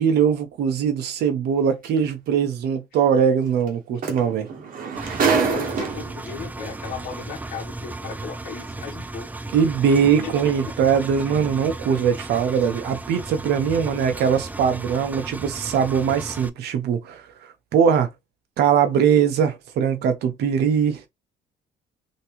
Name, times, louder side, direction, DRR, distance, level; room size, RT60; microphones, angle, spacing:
voice 1, 0.0-4.5 9.5-18.1 18.6-21.0, right 7 dB, 75° right, 1.0 m, -21 dB
sound 1, 1.8-2.0 3.7-3.8 4.0-6.3 7.2-7.3, right 5 dB, 55° right, 1.3 m, -25 dB
Engine, 5.0-16.5, right 2 dB, 10° right, 0.4 m, -35 dB
voice 2, 5.2-9.4 10.2-10.5 11.3-11.5, left 6 dB, 55° left, 1.2 m, -36 dB
3.5 x 3.1 x 2.9 m
cardioid pair, 110°, 17 cm